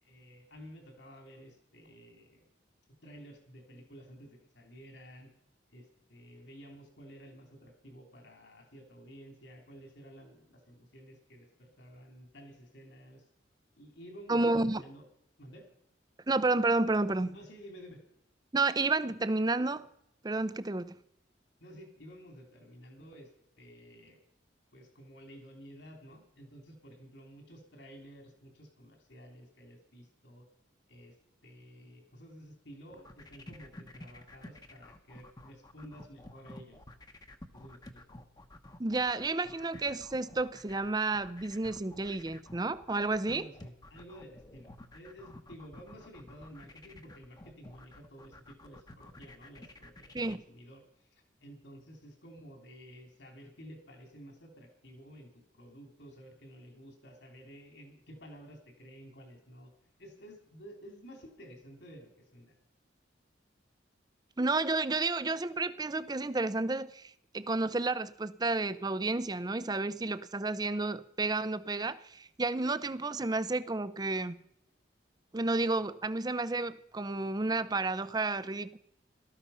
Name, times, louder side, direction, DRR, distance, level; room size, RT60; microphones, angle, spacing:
voice 1, 0.0-2.5 3.0-5.3 5.7-13.2 13.8-15.1 15.4-15.7 17.3-18.0 21.6-23.3 23.6-24.2 24.7-30.5 30.9-31.2 31.4-36.8 37.5-38.2 43.2-59.7 60.0-62.5, equal, 70° left, 3 dB, 3.2 m, -52 dB
voice 2, 14.3-14.8 16.3-17.4 18.5-19.9 20.2-21.0 38.8-43.5 50.1-50.4 64.4-74.4 75.3-78.8, right 3 dB, 20° right, 15 dB, 0.5 m, -31 dB
sound 1, 32.9-50.4, left 1 dB, 20° left, 0.9 m, -51 dB
17.5 x 13.0 x 5.6 m, 0.77 s
head